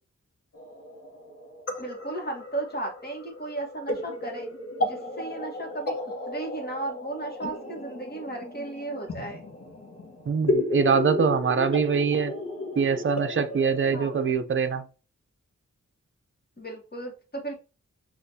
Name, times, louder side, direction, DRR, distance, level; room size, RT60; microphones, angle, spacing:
sound 1, 0.5-14.3, left 2 dB, 50° left, 1.0 m, -34 dB
voice 1, 1.8-4.5 4.8-5.9 6.3-9.4 13.9-14.1 16.6-17.6, right 2 dB, 35° left, 1.3 m, -35 dB
voice 2, 10.3-12.3 12.8-14.8, right 6 dB, 45° right, 0.5 m, -24 dB
6.4 x 2.5 x 2.7 m
wide cardioid pair, 75°, 29 cm